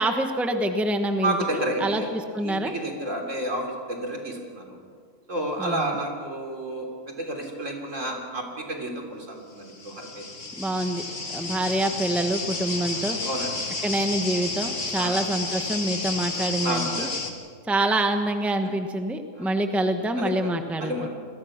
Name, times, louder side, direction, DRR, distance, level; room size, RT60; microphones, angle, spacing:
voice 1, 0.0-2.7 5.6-5.9 10.6-11.0 11.3-13.2 13.8-17.1 17.7-21.1, right 1 dB, ahead, 6 dB, 1.2 m, -26 dB
voice 2, 1.2-2.1 2.4-4.8 5.3-10.2 13.2-13.5 15.0-15.2 16.6-17.2 19.4-19.5 20.2-20.5 20.8-21.1, right 1 dB, 65° right, 2 dB, 3.8 m, -30 dB
sound 1, 9.7-17.3, left 3 dB, 65° left, 2.4 m, -31 dB
28.5 x 21.5 x 6.0 m, 2.1 s
omnidirectional pair, 1.4 m